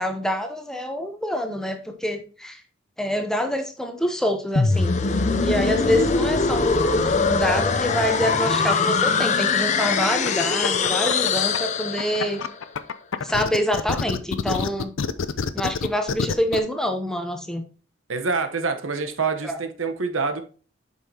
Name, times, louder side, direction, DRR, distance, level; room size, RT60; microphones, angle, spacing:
voice 1, 0.0-2.6 3.0-5.0 5.4-12.4 13.2-14.9 15.5-17.6 19.4-19.6, equal, 5° left, 0.7 m, -26 dB
sound 1, 4.6-12.4, left 4 dB, 35° left, 0.5 m, -22 dB
sound 2, 9.8-11.6 12.0-16.6, left 5 dB, 80° left, 0.5 m, -27 dB
voice 2, 18.1-20.4, right 4 dB, 85° right, 1.0 m, -26 dB
8.1 x 5.6 x 2.8 m
head